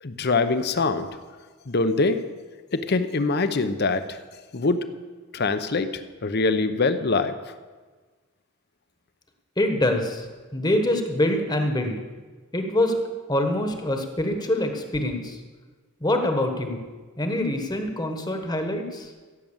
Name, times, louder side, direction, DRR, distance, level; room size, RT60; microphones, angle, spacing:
voice 1, 0.0-1.1 1.7-2.2 2.7-4.2 4.5-4.8 5.3-7.3, left 3 dB, 50° left, 11 dB, 0.8 m, -23 dB
voice 2, 9.6-10.3 10.5-12.0 12.5-13.0 13.3-15.4 16.0-16.8 17.2-19.1, left 1 dB, 20° left, 5 dB, 1.3 m, -25 dB
16.0 x 7.6 x 7.3 m, 1.4 s
head